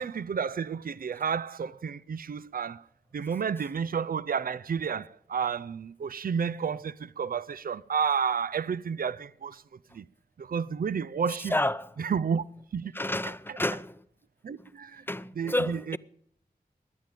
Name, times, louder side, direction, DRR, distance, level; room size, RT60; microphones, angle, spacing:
voice 1, 0.0-2.8 3.1-9.6 9.9-10.0 10.4-11.5 12.0-12.4 12.7-12.9 13.3-13.6 14.4-15.0 15.4-16.0, right 6 dB, 65° right, 0.5 m, -31 dB
voice 2, 11.5-11.9 12.9-14.0 15.1-16.0, left 1 dB, 15° left, 0.6 m, -30 dB
21.5 x 9.1 x 5.1 m
cardioid pair, 50°, 16 cm